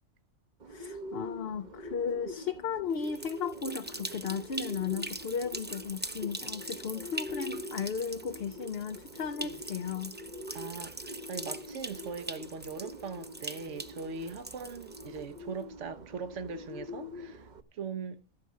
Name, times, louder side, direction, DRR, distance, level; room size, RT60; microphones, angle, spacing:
Bird, 0.6-17.6, left 1 dB, 40° right, 1.0 m, -45 dB
voice 1, 0.7-10.2, left 6 dB, 55° left, 0.9 m, -35 dB
sound 1, 2.9-15.4, right 2 dB, 15° right, 0.4 m, -42 dB
voice 2, 10.5-17.4 17.7-18.2, right 5 dB, 70° right, 1.5 m, -40 dB
15.0 x 6.9 x 6.3 m
omnidirectional pair, 1.3 m